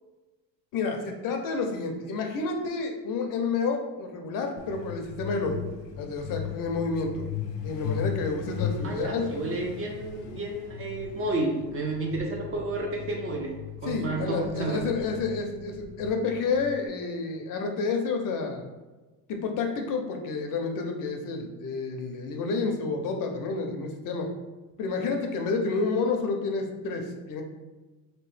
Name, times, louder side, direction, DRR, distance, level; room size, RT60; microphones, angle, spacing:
voice 1, 0.7-5.6 6.0-7.2 7.6-9.2 13.9-18.6 19.3-24.3 24.8-27.4, left 4 dB, 45° left, 4 dB, 0.6 m, -29 dB
Truck, 4.6-16.9, left 8 dB, 85° left, 0.6 m, -38 dB
voice 2, 8.8-13.5 13.8-14.8, right 2 dB, 30° right, 0 dB, 0.5 m, -31 dB
3.0 x 2.9 x 3.2 m, 1.2 s
supercardioid pair, 120°, 47 cm